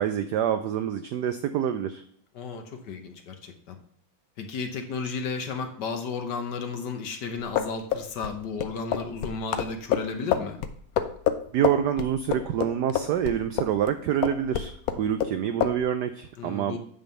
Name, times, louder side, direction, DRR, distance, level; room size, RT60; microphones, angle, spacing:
voice 1, 0.0-2.0 11.5-16.8, right 9 dB, 90° right, 10 dB, 0.9 m, -27 dB
voice 2, 2.3-3.8 4.4-10.6 16.4-16.8, left 4 dB, 60° left, 6 dB, 1.4 m, -33 dB
sound 1, 7.4-13.9 14.2-15.3 15.6-15.8, left 9 dB, 85° left, 0.8 m, -27 dB
9.1 x 3.6 x 6.8 m, 0.62 s
omnidirectional pair, 2.4 m